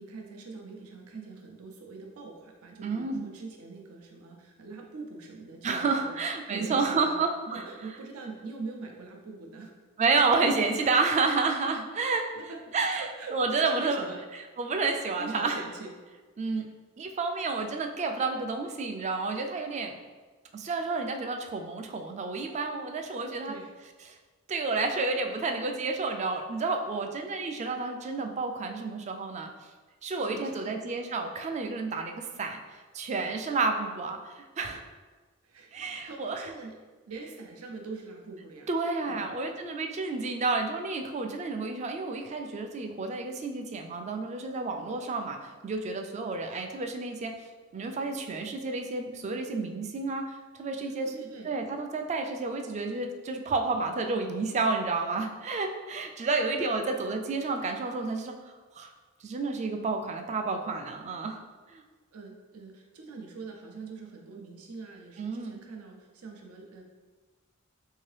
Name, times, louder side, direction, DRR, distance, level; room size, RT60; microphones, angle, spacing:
voice 1, 0.0-6.2 6.5-7.2 7.5-9.7 12.4-12.6 12.9-14.2 15.2-15.9 23.4-23.7 30.0-30.8 35.4-36.8 37.1-38.7 39.1-39.3 50.8-51.5 62.1-66.8, right 3 dB, 85° right, 1 dB, 0.5 m, -43 dB
voice 2, 2.8-3.2 5.6-7.7 10.0-12.2 12.7-13.1 13.3-14.0 14.6-15.6 16.4-16.7 17.0-19.9 20.5-23.6 24.5-29.5 30.0-34.8 35.7-36.5 38.7-47.3 47.7-50.2 50.5-51.1 51.4-58.9 59.2-61.4 61.7-61.8 65.2-65.6, right 3 dB, 30° right, 4 dB, 0.3 m, -30 dB
3.6 x 2.7 x 3.2 m, 1.3 s
head